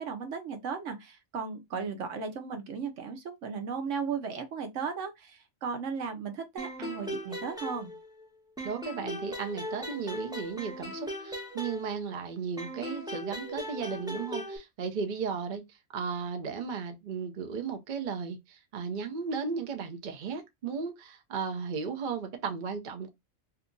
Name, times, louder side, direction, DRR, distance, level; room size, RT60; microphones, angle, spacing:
voice 1, 0.0-7.9, right 5 dB, 65° right, 1.0 m, -36 dB
sound 1, 6.6-8.3 8.6-12.2 12.6-14.6, equal, 5° right, 0.6 m, -38 dB
voice 2, 8.6-23.1, right 5 dB, 50° right, 0.6 m, -35 dB
2.8 x 2.4 x 3.7 m
omnidirectional pair, 1.4 m